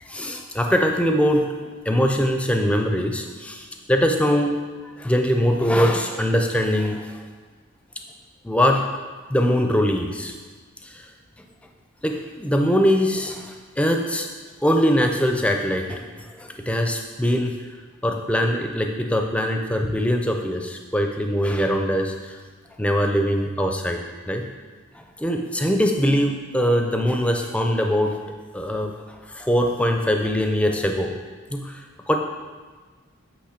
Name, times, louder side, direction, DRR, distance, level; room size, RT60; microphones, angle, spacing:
voice 1, 0.1-1.5 1.9-4.6 5.0-7.2 8.4-8.8 9.3-10.3 12.0-14.3 14.6-16.0 16.4-17.5 18.0-22.1 22.8-24.4 25.2-28.2 28.5-28.9 29.3-31.1 31.5-31.7 32.1-32.2, equal, 5° left, 3 dB, 0.4 m, -22 dB
8.5 x 3.0 x 5.0 m, 1.5 s
head